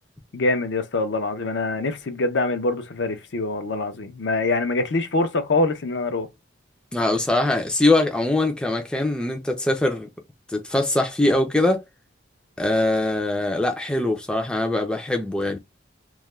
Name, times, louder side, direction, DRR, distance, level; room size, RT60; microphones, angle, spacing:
voice 1, 0.3-6.3, left 2 dB, 70° left, 0.6 m, -24 dB
voice 2, 6.9-10.1 10.5-11.8 12.6-15.6, left 2 dB, 5° left, 0.4 m, -22 dB
2.3 x 2.1 x 3.0 m
head